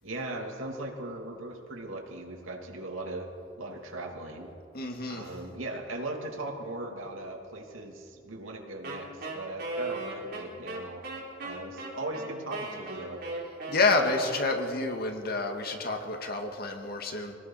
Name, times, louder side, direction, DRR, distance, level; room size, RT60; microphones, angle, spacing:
voice 1, 0.0-4.5 5.0-11.1 11.4-13.3, right 2 dB, 80° right, 1 dB, 3.0 m, -38 dB
voice 2, 4.7-5.3 13.7-17.3, left 3 dB, 50° left, 3 dB, 2.2 m, -28 dB
Wind instrument woodwind instrument, 8.8-14.9, right 2 dB, 50° right, 4.4 m, -38 dB
25.5 x 19.0 x 5.9 m, 2.4 s
head